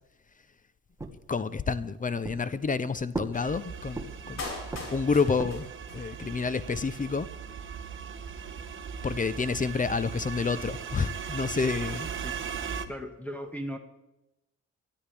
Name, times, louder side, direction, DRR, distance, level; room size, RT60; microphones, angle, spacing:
sound 1, 1.0-1.8 2.2-2.8 3.1-4.4 4.7-5.8, right 2 dB, 10° right, 1.8 m, -38 dB
voice 1, 1.3-4.4 4.9-5.7 5.9-7.3 9.0-12.1, left 4 dB, 25° left, 0.7 m, -29 dB
sound 2, 3.3-12.9, right 7 dB, 40° right, 1.3 m, -38 dB
Clapping, 4.4-6.4 6.6-6.7, left 3 dB, 60° left, 5.1 m, -40 dB
voice 2, 12.9-13.8, equal, 5° left, 1.7 m, -37 dB
23.0 x 13.5 x 3.5 m
cardioid pair, 90°, 30 cm